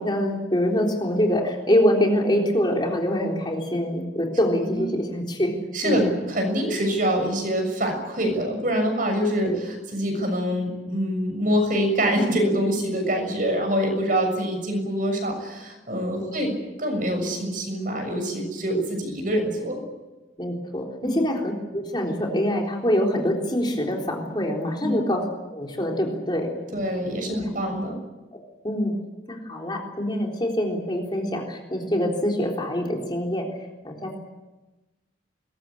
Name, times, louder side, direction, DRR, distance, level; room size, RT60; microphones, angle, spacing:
voice 1, 0.0-5.5 5.8-6.1 9.5-9.6 16.2-16.4 20.4-25.2 25.5-26.8 27.3-27.4 28.6-28.9 29.3-33.5 33.8-34.2, equal, 25° left, 0 dB, 3.8 m, -25 dB
voice 2, 5.7-16.5 16.8-19.9 24.8-25.1 26.7-28.0, equal, 45° right, 4 dB, 6.8 m, -25 dB
22.5 x 21.0 x 8.6 m, 1.1 s
head